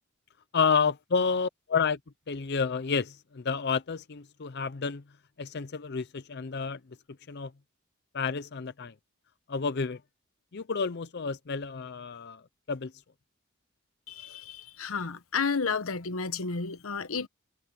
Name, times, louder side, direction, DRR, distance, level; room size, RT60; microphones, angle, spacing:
voice 1, 0.5-2.0 2.3-5.0 5.4-6.8 7.3-7.5 8.1-8.9 9.5-10.0 10.5-12.4 12.7-12.9, left 5 dB, 55° left, 0.6 m, -30 dB
voice 2, 14.1-17.3, left 5 dB, 85° left, 1.0 m, -32 dB
head